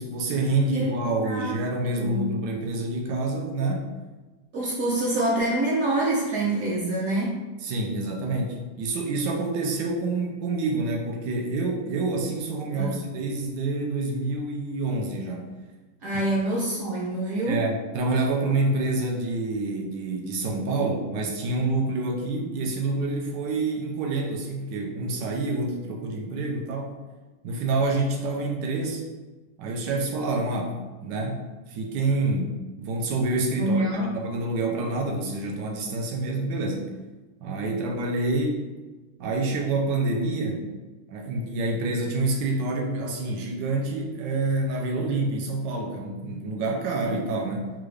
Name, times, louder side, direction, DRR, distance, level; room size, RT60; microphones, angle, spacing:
voice 1, 0.0-3.9 7.6-15.5 16.1-16.3 17.5-27.0 27.4-29.1 29.6-30.7 31.0-36.9 37.4-38.7 39.2-40.6 41.1-47.7, right 2 dB, 85° right, 1 dB, 1.3 m, -27 dB
voice 2, 1.2-1.6 1.9-2.3 4.5-7.4 12.7-13.0 16.0-17.6 33.5-34.1, right 1 dB, 60° right, -6 dB, 0.9 m, -26 dB
3.7 x 2.4 x 3.1 m, 1.3 s
omnidirectional pair, 1.9 m